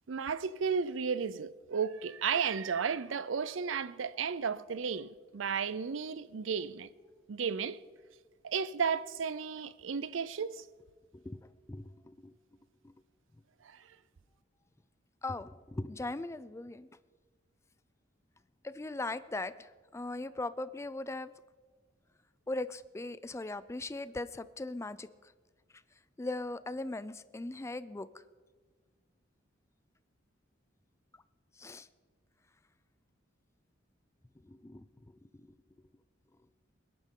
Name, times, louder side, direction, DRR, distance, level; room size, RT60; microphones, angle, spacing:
voice 1, 0.1-6.9 7.3-7.8 8.4-10.6 13.6-14.0, right 6 dB, 75° right, 0.5 m, -33 dB
voice 2, 11.1-12.3 12.8-12.9 15.2-16.9 18.6-21.3 22.5-25.1 26.2-28.1 31.6-31.9 34.4-35.1 35.4-35.5, left 2 dB, 15° left, 0.4 m, -39 dB
20.5 x 10.5 x 3.8 m
head